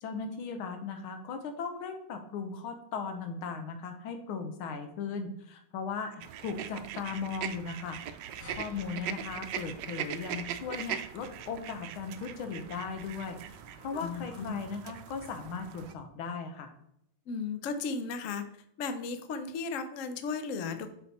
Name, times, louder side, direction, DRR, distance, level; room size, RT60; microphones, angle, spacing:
voice 1, 0.0-6.1 6.4-8.0 8.5-13.4 13.8-16.7, left 5 dB, 85° left, 6 dB, 1.8 m, -37 dB
sound 1, 6.2-15.9, right 9 dB, 75° right, 1.0 m, -41 dB
sound 2, 8.4-13.3, equal, 15° left, 0.7 m, -55 dB
voice 2, 13.9-14.5 17.3-18.4 18.8-20.9, left 4 dB, 70° left, 9 dB, 0.7 m, -35 dB
7.2 x 4.3 x 4.2 m, 0.76 s
omnidirectional pair, 2.2 m